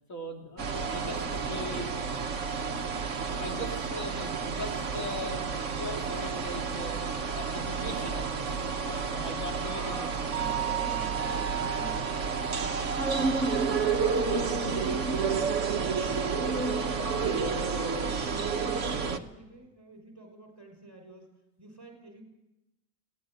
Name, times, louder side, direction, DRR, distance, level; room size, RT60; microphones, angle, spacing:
voice 1, 0.1-7.0 7.3-10.0 10.4-10.5 17.8-18.1, left 1 dB, 70° left, 1 dB, 3.3 m, -40 dB
sound 1, 0.6-19.2, right 5 dB, 60° right, 1.4 m, -30 dB
voice 2, 9.6-17.6 18.0-22.2, right 1 dB, 15° right, 2 dB, 5.7 m, -48 dB
21.5 x 17.0 x 7.8 m, 0.97 s
omnidirectional pair, 1.4 m